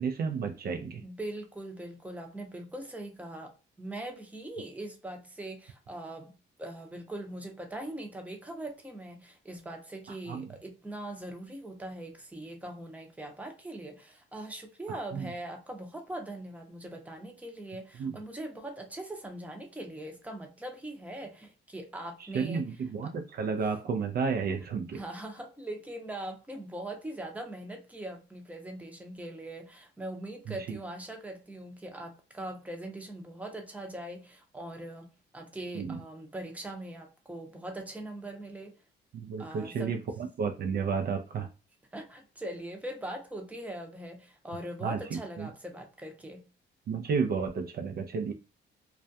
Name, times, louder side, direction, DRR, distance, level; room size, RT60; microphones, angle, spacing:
voice 1, 0.0-1.0 10.1-10.5 14.9-15.3 18.0-18.2 22.2-25.0 30.7-30.8 35.7-36.0 39.1-41.5 44.8-45.5 46.9-48.3, right 5 dB, 50° right, 5 dB, 0.4 m, -32 dB
voice 2, 1.0-3.5 3.8-22.7 23.5-23.6 24.9-38.7 39.4-39.9 41.9-46.5, right 1 dB, 5° right, 3 dB, 0.7 m, -41 dB
2.3 x 2.1 x 2.5 m, 0.33 s
cardioid pair, 90°, 20 cm